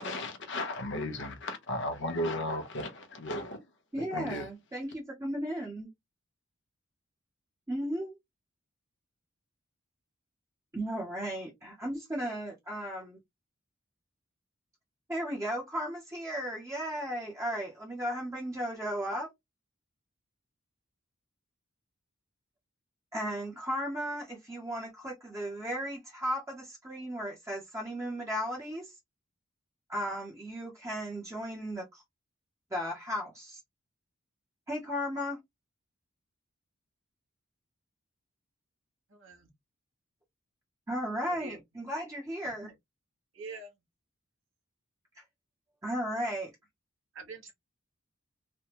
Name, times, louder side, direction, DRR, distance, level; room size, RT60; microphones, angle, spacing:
voice 1, 0.0-3.6 4.1-4.4, left 1 dB, 60° left, 0.9 m, -35 dB
voice 2, 3.9-5.9 7.7-8.2 10.7-13.2 15.1-19.3 23.1-29.0 29.9-32.0 32.7-33.6 34.7-35.4 40.9-42.7 45.1-45.2 45.8-46.5, equal, 15° right, 0.7 m, -35 dB
voice 3, 39.1-39.5 41.3-41.6 42.6-42.7 43.3-43.7 47.1-47.5, right 3 dB, 65° right, 1.2 m, -44 dB
3.4 x 2.2 x 2.9 m
head